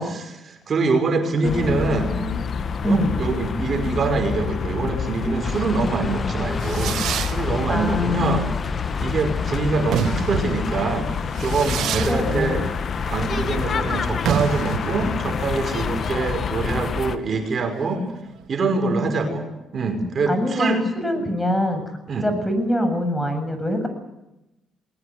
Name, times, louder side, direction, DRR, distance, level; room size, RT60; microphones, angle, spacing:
voice 1, 0.0-2.1 2.8-8.5 9.0-11.1 11.4-12.6 13.1-18.0 18.5-19.4 19.7-20.8 21.1-21.3 22.1-22.3, right 3 dB, 50° right, 5 dB, 5.3 m, -24 dB
sound 1, 1.4-17.2, left 6 dB, 55° left, 1.8 m, -27 dB
voice 2, 1.4-2.4 2.8-3.2 7.7-8.4 12.0-12.7 18.9-19.4 20.3-21.8 22.2-23.9, left 1 dB, 10° left, 8 dB, 7.6 m, -24 dB
sound 2, 5.4-11.0, left 4 dB, 40° left, 1.7 m, -32 dB
Fireworks, 6.2-18.5, right 10 dB, 70° right, 1.2 m, -30 dB
21.0 x 19.0 x 9.6 m, 0.93 s
supercardioid pair, 60°, 0 cm